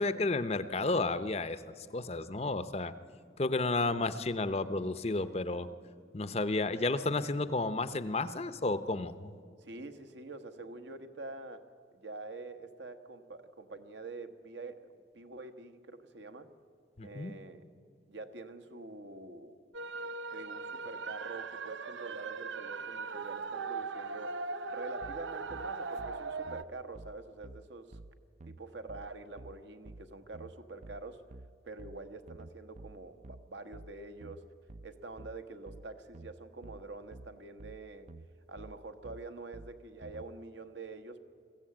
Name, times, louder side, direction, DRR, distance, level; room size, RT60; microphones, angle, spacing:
voice 1, 0.0-2.9 3.4-5.7 6.1-9.4 17.0-17.3, left 2 dB, 35° left, 13 dB, 0.6 m, -32 dB
voice 2, 9.6-11.6 11.9-14.9 15.1-16.5 17.0-17.6 18.1-19.6 20.3-28.0 28.4-31.2 31.6-34.5 34.8-38.1 38.5-41.2, right 3 dB, 70° right, 7 dB, 1.2 m, -46 dB
sound 1, 19.7-26.6, right 4 dB, 90° right, 0.7 m, -39 dB
sound 2, 25.0-40.3, right 2 dB, 40° right, 0.4 m, -50 dB
21.5 x 15.0 x 8.8 m, 2.3 s
head